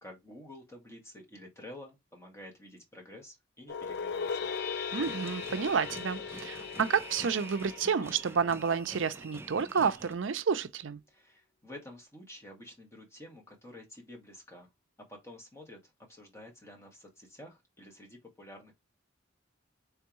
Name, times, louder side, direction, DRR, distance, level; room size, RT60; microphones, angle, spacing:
voice 1, 0.0-4.5 11.1-14.7 15.0-18.7, left 1 dB, 15° left, 1.6 m, -50 dB
sound 1, 3.7-8.9, left 6 dB, 60° left, 0.4 m, -38 dB
sound 2, 4.9-10.1, right 2 dB, 15° right, 0.3 m, -47 dB
voice 2, 4.9-11.0, right 6 dB, 80° right, 0.5 m, -30 dB
3.5 x 3.5 x 3.0 m
head